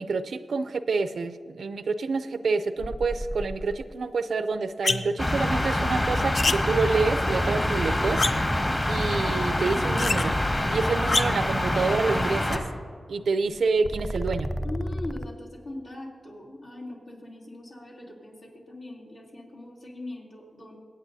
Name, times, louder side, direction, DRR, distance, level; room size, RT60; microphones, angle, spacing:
voice 1, 0.0-8.2 8.9-10.3 10.7-12.6 13.1-14.5, right 4 dB, 80° right, 11 dB, 0.5 m, -27 dB
sound 1, 2.8-4.0 5.7-6.6 13.6-15.3, equal, ahead, 0.4 m, -33 dB
sound 2, 4.8-5.2 6.3-6.6 7.2-7.3 8.2-8.6 10.0-10.2 11.0-11.5 12.5-12.6, left 3 dB, 55° left, 0.5 m, -26 dB
sound 3, 5.2-12.6, left 1 dB, 30° left, 1.7 m, -26 dB
voice 2, 14.6-20.8, left 1 dB, 75° left, -5 dB, 3.1 m, -40 dB
23.5 x 8.4 x 2.7 m, 2.1 s
cardioid pair, 60°, 0 cm